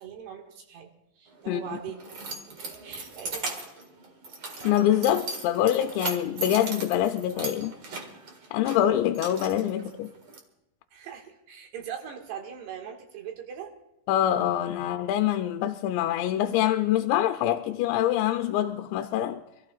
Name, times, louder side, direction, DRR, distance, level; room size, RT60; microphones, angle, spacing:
voice 1, 0.0-2.0 2.5-3.4 9.7-9.9 10.9-13.7, right 8 dB, 70° right, 3.7 m, -41 dB
Keys jangling, 1.3-10.4, right 3 dB, 50° right, 1.7 m, -38 dB
voice 2, 4.6-7.8 8.5-10.1 14.1-19.4, left 11 dB, 85° left, 2.9 m, -25 dB
27.0 x 14.5 x 2.4 m
omnidirectional pair, 5.0 m